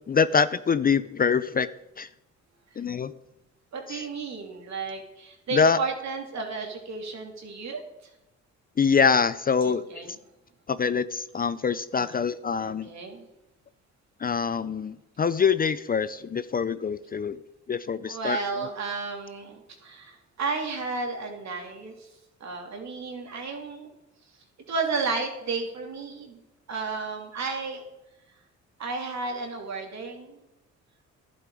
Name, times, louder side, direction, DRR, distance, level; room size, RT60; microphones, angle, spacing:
voice 1, 0.1-1.7 2.0-2.1 2.8-3.1 3.9-4.0 5.5-5.8 8.8-10.0 10.7-12.9 14.2-17.4 17.7-18.4, left 6 dB, 30° left, 15 dB, 0.5 m, -24 dB
voice 2, 3.7-7.8 9.6-10.2 12.0-12.1 12.6-13.3 18.0-22.1 22.4-23.9 24.7-26.4 26.7-27.8 28.8-30.4, right 4 dB, 60° right, 2 dB, 3.0 m, -33 dB
11.0 x 10.5 x 4.9 m, 0.91 s
cardioid pair, 80°, 31 cm